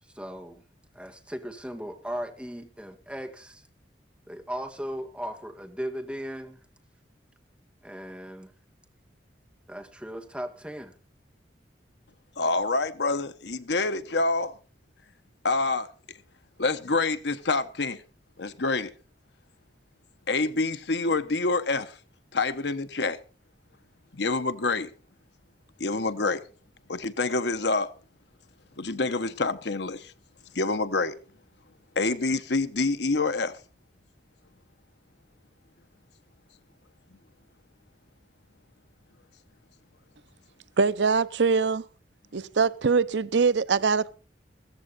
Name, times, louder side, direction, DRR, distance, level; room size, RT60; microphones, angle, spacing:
voice 1, 0.1-0.6 0.9-3.6 4.3-6.6 7.8-8.5 9.7-11.0, equal, 5° right, 1.7 m, -37 dB
voice 2, 12.4-14.6 15.4-16.2 16.6-18.0 18.4-18.9 20.3-22.0 22.3-23.2 24.1-24.9 25.8-26.4 26.9-27.9 28.8-30.1 30.5-31.1 31.9-33.6, left 3 dB, 70° left, 1.0 m, -27 dB
voice 3, 40.8-41.8 42.3-44.1, right 5 dB, 75° right, 0.6 m, -23 dB
15.0 x 14.5 x 4.2 m
head